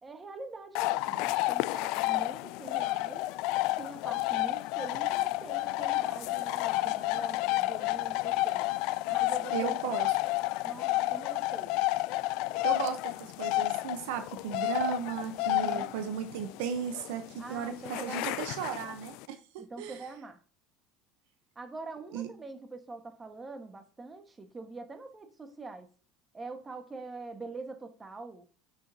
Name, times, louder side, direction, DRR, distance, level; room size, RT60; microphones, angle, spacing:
voice 1, 0.0-3.3 3.8-8.6 9.1-9.8 10.6-11.8 15.4-15.9 17.4-18.5 19.6-20.4 21.5-25.9 26.3-28.4, right 3 dB, 20° right, 1.5 m, -44 dB
sound 1, 0.7-19.2, left 18 dB, 65° left, 0.3 m, -31 dB
voice 2, 9.5-10.1 12.6-20.0 22.1-22.3, right 8 dB, 75° right, 0.9 m, -35 dB
7.8 x 5.8 x 2.8 m
hypercardioid pair, 80°, 0 cm